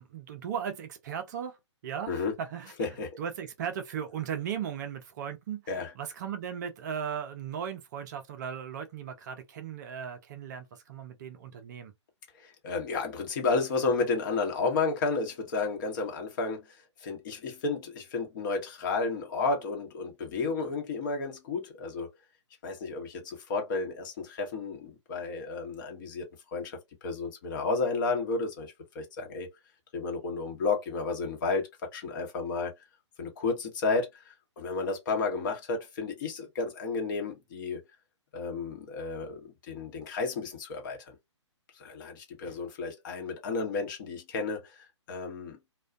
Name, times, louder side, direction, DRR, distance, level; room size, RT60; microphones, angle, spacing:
voice 1, 0.0-1.6 1.8-2.9 3.2-11.9, right 8 dB, 35° right, 0.5 m, -37 dB
voice 2, 2.8-3.2 5.7-5.9 12.4-22.1 22.6-29.5 29.9-32.7 33.2-37.8 38.3-41.2 41.8-45.6, left 4 dB, 40° left, 0.9 m, -32 dB
2.3 x 2.2 x 2.4 m
figure-of-eight pair, 130°, 16 cm